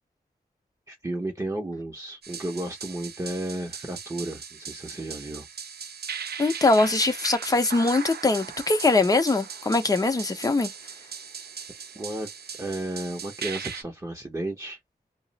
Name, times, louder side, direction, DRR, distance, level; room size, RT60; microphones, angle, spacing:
voice 1, 0.9-5.5 11.9-12.3 12.6-14.8, right 1 dB, 20° right, 0.6 m, -33 dB
sound 1, 2.2-13.8, right 6 dB, 75° right, 0.5 m, -39 dB
voice 2, 6.4-10.7, left 3 dB, 20° left, 0.6 m, -22 dB
2.4 x 2.0 x 3.8 m
wide cardioid pair, 95°, 17 cm